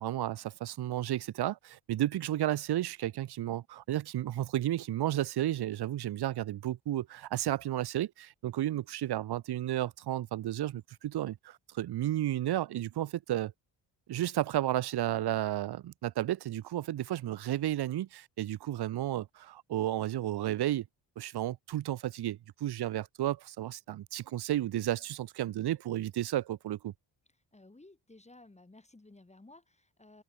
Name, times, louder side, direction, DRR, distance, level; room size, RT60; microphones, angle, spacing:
voice 1, 0.0-13.5 14.1-20.9 21.2-26.9, right 13 dB, 60° right, 0.9 m, -32 dB
voice 2, 27.5-30.2, left 2 dB, 15° left, 2.7 m, -56 dB
cardioid pair, 90°, 44 cm